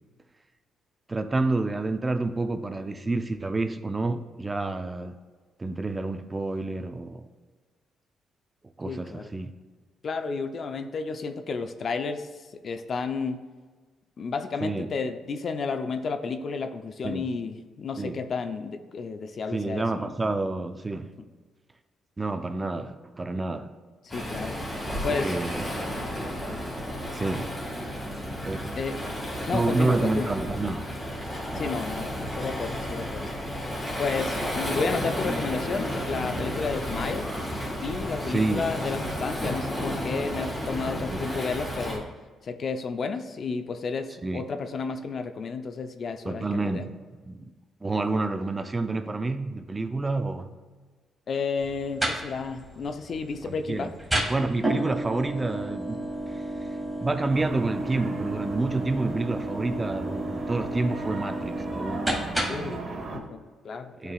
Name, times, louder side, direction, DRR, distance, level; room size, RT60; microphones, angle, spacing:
voice 1, 1.1-5.2 5.6-7.3 8.8-9.5 14.6-14.9 17.0-17.3 18.0-18.2 19.5-21.1 22.2-23.7 24.9-25.7 27.1-27.6 28.4-28.7 29.5-30.9 38.2-38.7 41.1-41.3 44.2-44.5 46.2-47.0 47.2-47.5 47.8-50.5 53.4-54.0 54.3-56.7 57.0-62.1 64.0-64.1, right 3 dB, 20° right, 9 dB, 0.5 m, -29 dB
voice 2, 8.8-9.3 10.0-12.3 12.6-13.4 14.2-20.1 24.0-24.6 25.0-25.3 28.8-28.9 29.5-30.3 31.5-33.3 34.0-37.3 37.8-42.1 42.4-46.8 51.3-53.9 62.5-64.1, left 4 dB, 50° left, 8 dB, 0.5 m, -32 dB
Waves surf, 24.1-42.0, equal, 20° left, 2.1 m, -32 dB
sound 1, 51.6-62.8, right 1 dB, 5° right, 2.0 m, -32 dB
sound 2, 57.3-63.2, right 3 dB, 45° right, 1.2 m, -37 dB
11.0 x 4.7 x 2.4 m, 1.4 s
cardioid pair, 90°, 0 cm